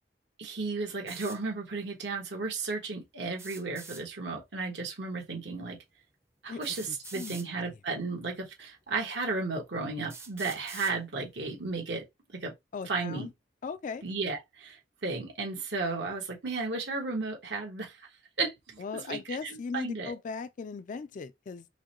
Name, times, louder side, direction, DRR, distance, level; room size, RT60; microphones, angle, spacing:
voice 1, 0.4-5.8 6.4-12.0 12.3-12.5 12.9-13.3 14.0-18.0 18.4-20.1, right 3 dB, 75° right, 1.3 m, -34 dB
sound 1, 1.1-1.4 3.3-4.0 5.5-5.6 6.6-7.5 8.5-8.6 9.2-9.3 10.1-11.0, right 4 dB, 15° right, 0.5 m, -45 dB
voice 2, 6.5-7.4 12.7-13.3 13.6-14.0 18.8-21.7, left 5 dB, 45° left, 0.3 m, -38 dB
4.7 x 2.2 x 2.9 m
head